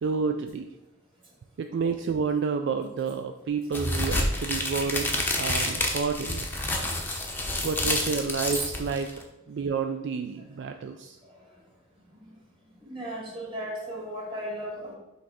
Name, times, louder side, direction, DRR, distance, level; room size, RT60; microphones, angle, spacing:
voice 1, 0.0-0.7 1.6-6.5 7.6-9.1 9.5-11.2, right 5 dB, 60° right, 6 dB, 0.3 m, -29 dB
sound 1, 3.7-9.2, left 1 dB, 10° left, 0.7 m, -29 dB
voice 2, 12.8-14.9, right 1 dB, 25° right, -3 dB, 1.9 m, -35 dB
6.3 x 3.3 x 4.8 m, 0.96 s
head